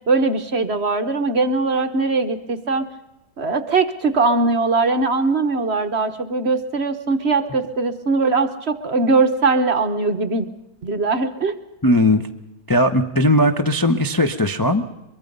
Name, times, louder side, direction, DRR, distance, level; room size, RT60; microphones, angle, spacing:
voice 1, 0.1-2.9 3.4-10.5 10.8-11.6, right 3 dB, 45° right, 8 dB, 1.1 m, -20 dB
voice 2, 11.8-12.3 12.7-14.9, left 1 dB, 20° left, 4 dB, 0.6 m, -18 dB
23.5 x 23.0 x 5.3 m, 0.96 s
omnidirectional pair, 1.8 m